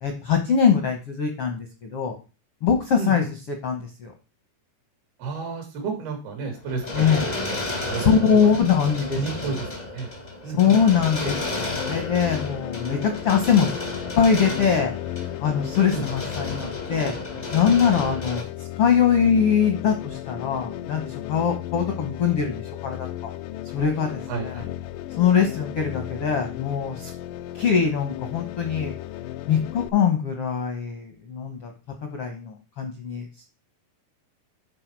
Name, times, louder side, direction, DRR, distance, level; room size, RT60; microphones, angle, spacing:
voice 1, 0.0-2.2 2.6-4.1 6.9-7.3 8.0-9.5 10.5-13.7 14.2-14.9 15.4-17.1 17.5-23.3 23.7-24.6 25.2-27.1 27.5-28.9 29.5-31.7 32.0-33.3, left 7 dB, 70° left, 4 dB, 1.3 m, -22 dB
voice 2, 5.2-8.3 9.2-10.1 10.4-10.8 15.9-16.0 24.3-24.7, right 5 dB, 85° right, 3 dB, 4.3 m, -32 dB
sound 1, 6.5-18.4, left 2 dB, 50° left, 0.4 m, -33 dB
sound 2, 11.3-29.9, left 13 dB, 85° left, 1.9 m, -35 dB
10.5 x 4.5 x 4.7 m, 0.32 s
omnidirectional pair, 4.3 m